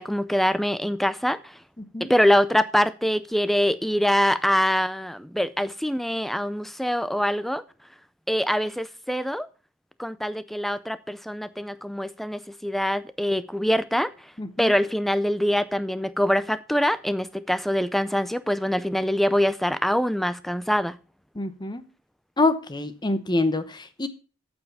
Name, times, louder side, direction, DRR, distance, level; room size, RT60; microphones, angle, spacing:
voice 1, 0.0-1.6 2.0-7.6 8.3-9.5 10.0-14.1 14.6-21.0, equal, ahead, 0.4 m, -24 dB
voice 2, 14.4-14.7 21.3-21.8 22.4-24.1, left 2 dB, 20° left, 0.8 m, -26 dB
8.6 x 7.1 x 5.7 m
head